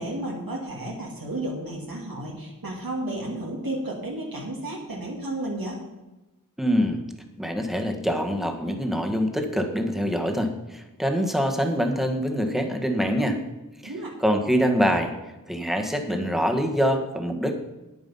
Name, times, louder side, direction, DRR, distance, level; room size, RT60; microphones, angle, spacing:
voice 1, 0.0-5.8 13.8-14.1, right 1 dB, 85° right, -2 dB, 2.1 m, -32 dB
voice 2, 6.6-7.0 7.4-13.4 13.8-13.9 14.2-15.1 15.5-17.6, equal, ahead, 4 dB, 1.6 m, -24 dB
9.5 x 9.3 x 5.6 m, 1.1 s
wide cardioid pair, 55°, 34 cm